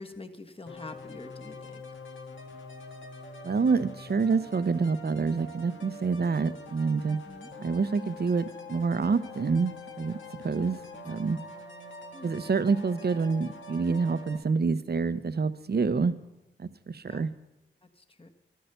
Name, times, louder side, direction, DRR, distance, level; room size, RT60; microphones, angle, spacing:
voice 1, 0.0-1.8 7.1-7.5 12.1-12.3 17.1-17.3 18.0-18.3, left 2 dB, 25° left, 6 dB, 1.4 m, -45 dB
sound 1, 0.7-14.4, left 2 dB, 75° left, 1.7 m, -45 dB
voice 2, 3.4-7.2 7.6-10.8 11.0-11.4 12.2-16.2 16.6-17.3, right 4 dB, 55° right, 13 dB, 0.8 m, -27 dB
12.5 x 12.0 x 6.9 m, 0.94 s
cardioid pair, 55°, 20 cm